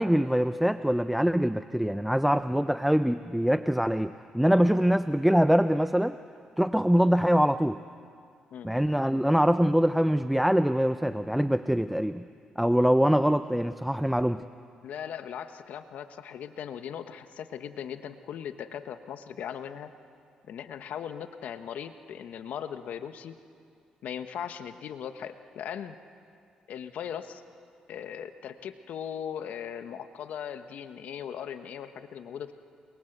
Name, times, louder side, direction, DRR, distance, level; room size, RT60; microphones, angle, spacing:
voice 1, 0.0-6.2 6.6-7.8 8.6-12.2 12.6-14.4, equal, 5° right, 11 dB, 0.6 m, -24 dB
voice 2, 14.8-19.9 20.5-23.4 24.0-26.0 26.7-27.4 27.9-32.5, left 8 dB, 75° left, 9 dB, 1.2 m, -38 dB
28.5 x 22.5 x 8.0 m, 2.3 s
cardioid pair, 80°, 3 cm